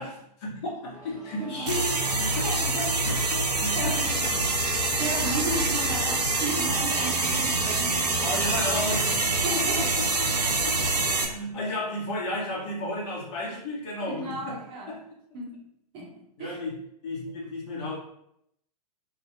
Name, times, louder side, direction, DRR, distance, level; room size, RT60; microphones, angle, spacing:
voice 1, 0.0-2.4 2.7-3.9 5.2-5.4 8.2-14.6 14.9-15.0 16.4-16.8 17.0-18.0, left 1 dB, 45° left, -4 dB, 1.1 m, -33 dB
sound 1, 0.9-7.6, left 1 dB, 15° left, 1.1 m, -46 dB
voice 2, 1.4-1.7 2.4-2.8 3.5-4.2 4.6-8.4 9.4-10.1 14.1-15.0 15.3-15.7 15.9-16.6, right 2 dB, 25° right, -1 dB, 0.7 m, -35 dB
sound 2, 1.7-11.3, right 3 dB, 75° right, 0.6 m, -26 dB
2.3 x 2.3 x 3.3 m, 0.75 s
figure-of-eight pair, 110°, 21 cm